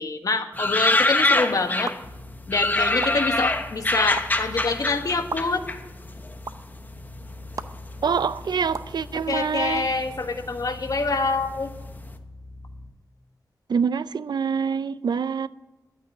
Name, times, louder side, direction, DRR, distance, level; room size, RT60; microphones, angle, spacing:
voice 1, 0.0-1.9 2.5-5.6 9.3-11.7, left 3 dB, 60° left, 1.5 m, -26 dB
sound 1, 0.6-2.1 2.5-6.4 6.6-7.5 8.2-8.7 9.0-9.1 9.3-11.6 11.9-12.0, left 2 dB, 25° left, 1.0 m, -24 dB
sound 2, 1.9-2.0 3.0-3.1 4.2-4.3 5.3-5.4 6.4-6.5 7.6-7.7 8.7-8.9, right 4 dB, 55° right, 0.8 m, -31 dB
sound 3, 2.0-12.9, left 2 dB, 75° left, 2.6 m, -42 dB
voice 2, 8.0-9.9 13.7-15.5, right 6 dB, 85° right, 0.5 m, -25 dB
12.0 x 8.6 x 9.8 m
wide cardioid pair, 115°, 7 cm